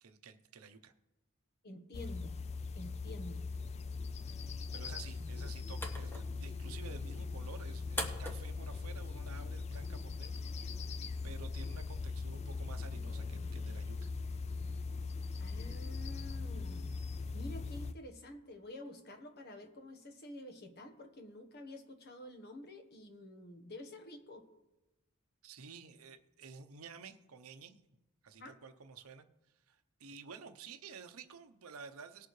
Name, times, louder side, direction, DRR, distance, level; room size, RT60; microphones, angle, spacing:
voice 1, 0.0-0.9 4.7-10.5 10.7-10.9 11.2-14.1 25.4-27.8 28.2-29.3 29.7-32.3, right 5 dB, 80° right, 8 dB, 0.7 m, -52 dB
voice 2, 1.6-2.4 2.7-3.5 15.4-16.9 17.3-24.4 28.4-28.5, left 1 dB, 50° left, 6 dB, 1.2 m, -49 dB
sound 1, 1.9-17.9, left 4 dB, 30° left, 0.3 m, -40 dB
sound 2, 5.1-10.1, equal, 10° left, 1.0 m, -46 dB
19.0 x 6.8 x 3.2 m, 1.0 s
head